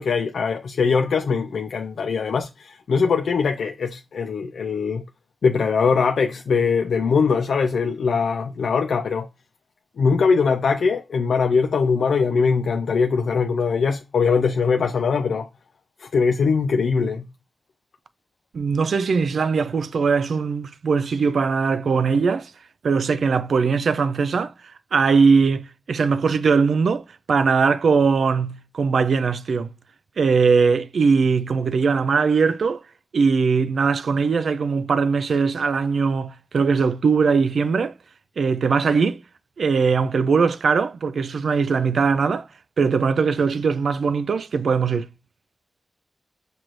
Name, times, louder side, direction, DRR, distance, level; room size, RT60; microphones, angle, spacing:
voice 1, 0.0-5.0 5.4-9.3 10.0-15.5 16.0-17.3, left 5 dB, 90° left, 0.3 m, -21 dB
voice 2, 18.5-22.5 22.8-24.5 24.9-29.7 30.2-32.8 33.1-37.9 38.4-39.2 39.6-42.4 42.8-45.1, right 5 dB, 75° right, 0.3 m, -20 dB
6.2 x 2.5 x 3.0 m
wide cardioid pair, 90°, 0 cm